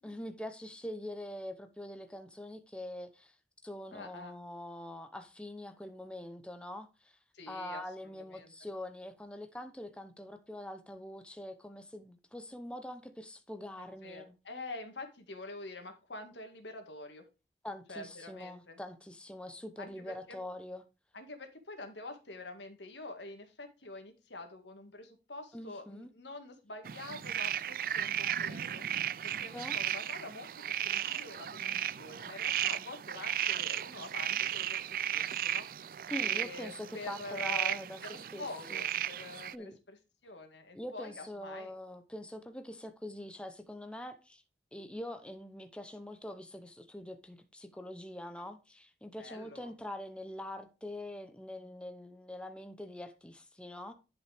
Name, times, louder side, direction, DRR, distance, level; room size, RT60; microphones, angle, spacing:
voice 1, 0.0-3.4 3.6-7.2 7.5-14.3 17.6-20.8 25.5-26.1 29.5-29.8 36.1-38.0 38.3-38.4 38.7-38.8 39.5-39.8 40.7-44.4 44.7-53.9, left 1 dB, 5° left, 0.7 m, -44 dB
voice 2, 3.9-4.4 7.3-8.7 13.8-17.2 17.9-18.8 19.8-20.4 21.1-28.8 29.2-34.8 35.1-35.9 36.2-41.7 49.2-49.7, left 2 dB, 85° left, 1.9 m, -46 dB
sound 1, 26.8-39.5, right 10 dB, 50° right, 0.3 m, -35 dB
11.0 x 5.6 x 3.4 m
head